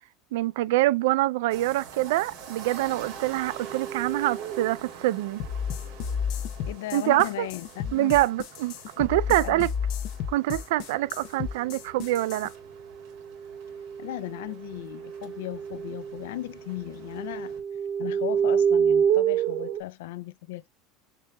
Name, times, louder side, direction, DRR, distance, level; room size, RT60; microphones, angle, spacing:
voice 1, 0.3-5.4 6.9-7.5 7.9-9.7 10.3-12.5, right 17 dB, 80° right, 0.3 m, -25 dB
sound 1, 1.5-17.6, right 6 dB, 55° right, 2.3 m, -47 dB
sound 2, 3.4-4.9 12.7-16.3 16.6-19.8, right 8 dB, 35° right, 0.7 m, -28 dB
sound 3, 5.4-12.5, left 7 dB, 55° left, 0.7 m, -32 dB
voice 2, 6.6-8.1 9.4-9.7 14.0-17.6 18.0-20.7, left 15 dB, 85° left, 0.3 m, -37 dB
6.6 x 2.8 x 2.2 m
supercardioid pair, 155°, 0 cm